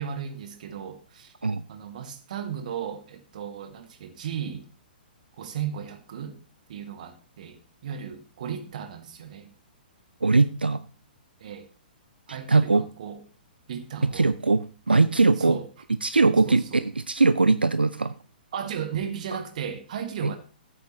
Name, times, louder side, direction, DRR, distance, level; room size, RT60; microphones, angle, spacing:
voice 1, 0.0-1.3 1.7-4.6 5.4-6.4 6.7-7.6 7.8-9.5 11.4-11.6 12.3-13.2 13.7-14.3 15.4-15.7 16.4-16.8 18.5-20.4, right 8 dB, 50° right, 8 dB, 1.6 m, -35 dB
voice 2, 10.2-10.8 12.5-12.8 14.0-15.6 16.0-18.1 19.3-19.4 20.2-20.3, right 3 dB, 80° right, 14 dB, 0.5 m, -21 dB
14.5 x 8.6 x 3.0 m, 0.36 s
figure-of-eight pair, 115°, 5 cm